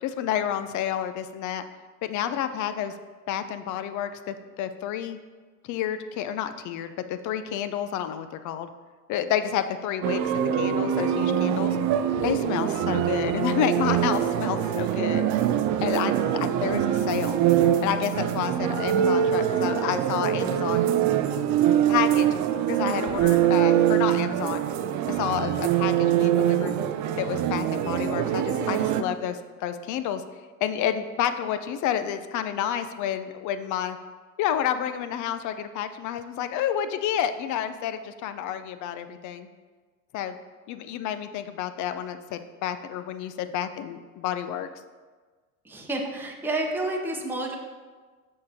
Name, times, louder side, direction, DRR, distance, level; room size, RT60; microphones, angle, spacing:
voice 1, 0.0-1.6 2.0-2.9 3.3-5.2 5.6-8.7 9.1-11.8 12.2-15.3 15.8-17.4 17.8-20.9 21.9-22.3 22.7-24.7 25.1-26.7 27.2-30.2 30.6-34.0 34.4-39.5 40.1-40.4 40.7-44.7, left 10 dB, 45° left, 11 dB, 0.6 m, -30 dB
sound 1, 10.0-29.0, right 10 dB, 45° right, 0.6 m, -24 dB
voice 2, 45.7-47.6, right 2 dB, 5° right, 0 dB, 0.9 m, -29 dB
6.5 x 6.5 x 4.2 m, 1.4 s
supercardioid pair, 105°, 43 cm